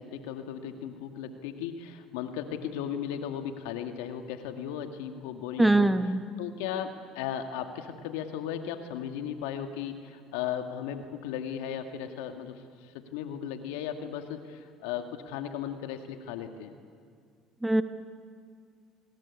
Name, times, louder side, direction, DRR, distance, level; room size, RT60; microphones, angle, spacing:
voice 1, 0.0-5.9 6.4-12.5 12.8-16.8, left 9 dB, 80° left, 6 dB, 2.1 m, -36 dB
voice 2, 5.6-6.2 17.6-17.8, right 2 dB, 10° right, 9 dB, 1.5 m, -22 dB
29.0 x 20.5 x 8.5 m, 2.1 s
hypercardioid pair, 75°, 0 cm